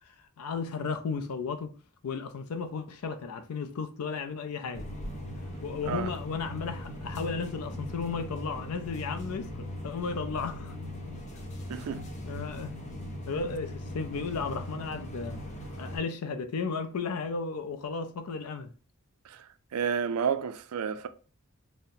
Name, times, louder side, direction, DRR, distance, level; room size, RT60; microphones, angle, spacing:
voice 1, 0.1-1.7 2.0-4.9 5.6-10.8 12.2-12.7 13.3-15.4 15.8-18.7, left 5 dB, 90° left, 0.5 m, -34 dB
sound 1, 4.7-16.0, left 1 dB, 30° left, 0.6 m, -39 dB
voice 2, 11.7-12.0 19.3-19.4 19.7-21.1, right 7 dB, 80° right, 0.4 m, -30 dB
4.0 x 2.1 x 2.6 m
head